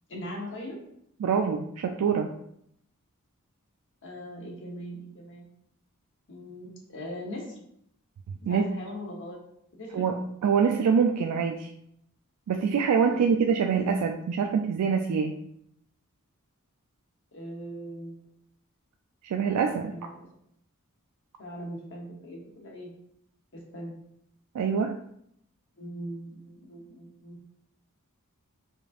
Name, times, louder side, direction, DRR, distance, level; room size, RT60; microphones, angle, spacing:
voice 1, 0.1-0.8 4.0-5.5 6.3-7.6 8.4-9.4 9.7-10.1 13.1-13.2 17.3-18.3 19.9-20.3 21.4-22.9 23.5-23.9 25.8-27.4, equal, 55° left, -1 dB, 1.0 m, -40 dB
voice 2, 1.2-2.3 8.5-8.7 9.9-11.7 12.5-15.3 19.2-19.9 24.5-25.0, right 6 dB, 85° right, 3 dB, 0.3 m, -25 dB
5.0 x 2.6 x 2.4 m, 0.72 s
head